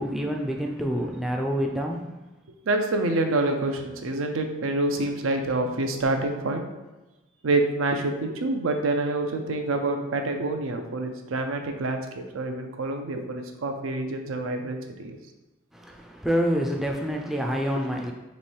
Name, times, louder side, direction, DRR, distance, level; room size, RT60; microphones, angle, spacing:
voice 1, 0.0-2.1 15.7-18.1, equal, ahead, 1 dB, 0.3 m, -27 dB
voice 2, 2.7-6.7 7.4-15.2, right 2 dB, 90° right, 5 dB, 0.5 m, -27 dB
3.1 x 3.0 x 4.4 m, 1.1 s
head